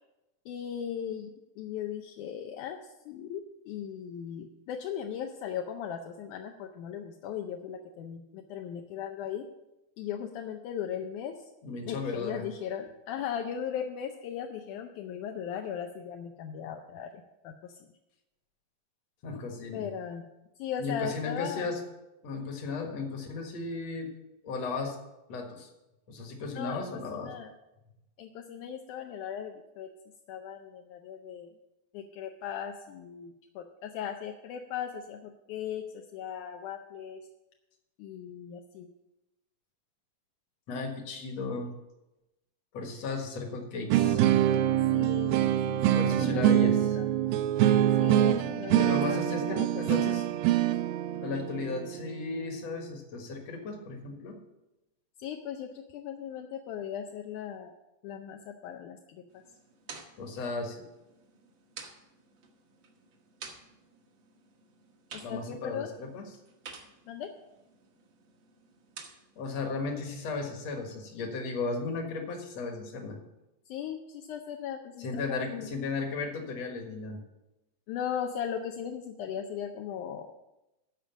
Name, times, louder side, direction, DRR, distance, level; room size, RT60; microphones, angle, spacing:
voice 1, 0.5-9.5 10.0-11.5 11.9-17.7 19.7-20.2 20.6-21.7 26.5-26.8 27.1-27.5 28.2-29.9 30.3-31.5 31.9-35.9 36.1-37.2 38.0-38.9 44.9-47.1 48.0-49.7 49.9-50.1 55.2-57.7 58.0-59.4 65.1-65.9 67.1-67.3 73.7-75.7 77.9-80.4, left 8 dB, 75° left, 4 dB, 1.9 m, -38 dB
voice 2, 11.6-12.5 19.2-19.9 20.8-21.8 22.2-24.1 24.4-25.0 25.3-25.7 26.1-27.3 40.7-41.7 42.7-44.2 45.9-47.0 48.8-50.2 51.2-54.4 60.2-60.8 65.2-66.3 69.4-73.2 75.0-77.2, left 4 dB, 55° left, 3 dB, 2.3 m, -35 dB
sound 1, 43.9-52.9, right 12 dB, 85° right, 2.3 m, -25 dB
sound 2, 59.3-69.4, right 5 dB, 70° right, 1.2 m, -51 dB
13.5 x 4.9 x 7.1 m, 0.97 s
omnidirectional pair, 4.1 m